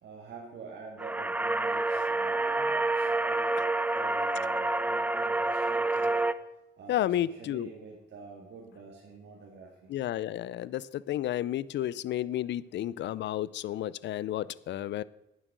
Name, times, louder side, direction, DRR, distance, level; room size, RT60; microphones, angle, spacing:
voice 1, 0.0-3.6 3.9-6.2 6.8-9.9, right 5 dB, 60° right, -1 dB, 2.0 m, -47 dB
sound 1, 1.0-6.3, right 2 dB, 10° right, 0.5 m, -28 dB
voice 2, 6.9-7.7 9.9-15.0, left 12 dB, 65° left, 20 dB, 0.5 m, -32 dB
10.0 x 7.6 x 6.1 m, 0.93 s
cardioid pair, 90°, 20 cm